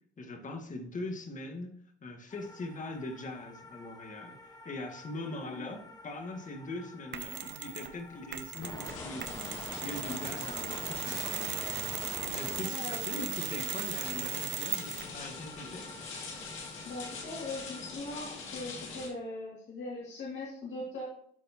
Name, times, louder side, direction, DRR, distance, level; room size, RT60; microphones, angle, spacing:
voice 1, 0.2-1.7 2.0-9.4 9.8-11.5 12.3-15.8, left 2 dB, 40° left, 4 dB, 1.6 m, -41 dB
sound 1, 2.3-18.0, left 2 dB, 20° left, 1.2 m, -47 dB
voice 2, 5.4-5.7 12.6-13.2 13.5-13.6 16.8-21.0, left 2 dB, 70° left, -6 dB, 2.4 m, -40 dB
Mechanisms, 7.1-7.9 8.3-15.2, right 9 dB, 60° right, 0.9 m, -38 dB
sound 2, 8.8-19.1, left 4 dB, 90° left, 2.1 m, -44 dB
12.5 x 4.2 x 2.9 m, 0.64 s
cardioid pair, 90°, 20 cm